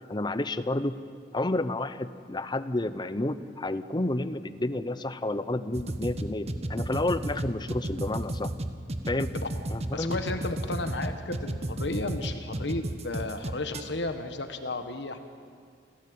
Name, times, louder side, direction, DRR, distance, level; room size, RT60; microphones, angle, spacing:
voice 1, 0.1-1.0 1.3-8.5 9.1-9.3 9.7-10.2, left 2 dB, 25° left, 12 dB, 0.8 m, -30 dB
sound 1, 5.7-13.8, right 1 dB, 35° right, 1.2 m, -32 dB
voice 2, 9.9-15.2, left 2 dB, 65° left, 7 dB, 1.4 m, -33 dB
28.5 x 16.0 x 8.7 m, 2.1 s
head